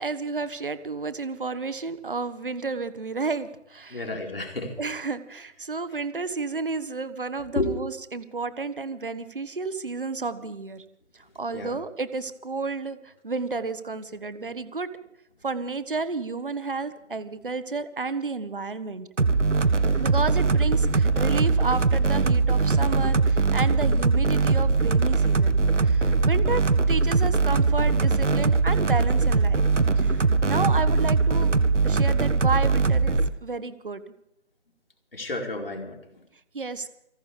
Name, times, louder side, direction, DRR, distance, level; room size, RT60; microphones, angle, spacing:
voice 1, 0.0-4.0 4.8-10.8 11.1-14.9 15.4-19.1 20.0-29.6 30.0-31.6 31.8-34.0 36.5-36.9, right 4 dB, 45° right, 12 dB, 1.4 m, -31 dB
voice 2, 3.9-4.8 7.5-7.8 11.5-11.8 14.4-14.6 19.7-20.0 35.1-36.0, left 2 dB, 50° left, 1 dB, 4.6 m, -32 dB
sound 1, 19.2-33.3, right 4 dB, 85° right, 1.5 m, -21 dB
29.5 x 12.0 x 3.4 m, 0.81 s
figure-of-eight pair, 170°, 36 cm